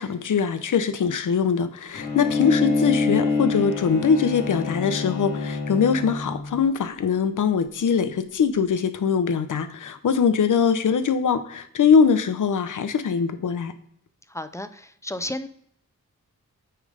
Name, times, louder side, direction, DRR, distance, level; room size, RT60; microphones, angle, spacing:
voice 1, 0.0-13.7, left 6 dB, 75° left, 11 dB, 0.7 m, -22 dB
Bowed string instrument, 1.9-6.6, left 3 dB, 50° left, 2.9 m, -26 dB
voice 2, 14.3-15.5, left 1 dB, 10° left, 11 dB, 0.4 m, -33 dB
8.9 x 3.2 x 5.0 m, 0.68 s
wide cardioid pair, 140°, 31 cm